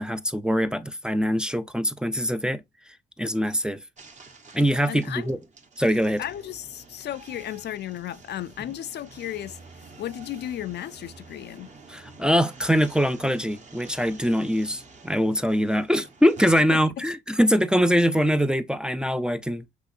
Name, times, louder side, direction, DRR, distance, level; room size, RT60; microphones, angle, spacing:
voice 1, 0.0-2.6 3.2-3.8 4.5-5.4 5.8-6.2 11.9-19.6, equal, 5° right, 0.4 m, -23 dB
sound 1, 4.0-16.5, right 4 dB, 35° right, 1.1 m, -48 dB
voice 2, 4.9-5.3 6.2-9.6 10.0-11.7 16.7-17.1, left 11 dB, 60° left, 0.4 m, -34 dB
6.1 x 3.1 x 2.6 m
cardioid pair, 90°, 20 cm